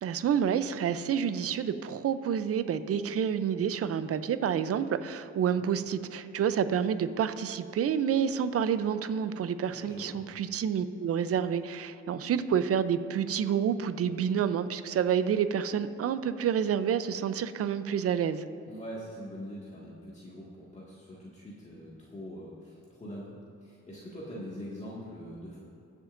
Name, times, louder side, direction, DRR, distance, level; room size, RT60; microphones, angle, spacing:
voice 1, 0.0-18.4, right 8 dB, 50° right, 12 dB, 0.6 m, -29 dB
voice 2, 9.7-10.2 18.6-23.3 23.6-25.6, equal, 25° left, -7 dB, 1.9 m, -43 dB
21.0 x 7.2 x 2.6 m, 2.8 s
cardioid pair, 90°, 30 cm